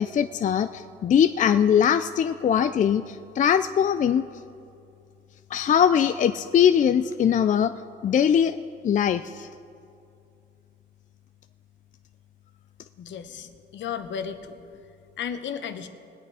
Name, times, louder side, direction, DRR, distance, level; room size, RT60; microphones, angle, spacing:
voice 1, 0.0-4.2 5.5-7.7 8.0-8.6 8.8-9.5, left 8 dB, 40° left, 11 dB, 0.4 m, -21 dB
voice 2, 13.0-14.6 15.2-15.9, left 7 dB, 70° left, 9 dB, 0.9 m, -34 dB
20.0 x 8.2 x 4.9 m, 2.5 s
cardioid pair, 90°, 20 cm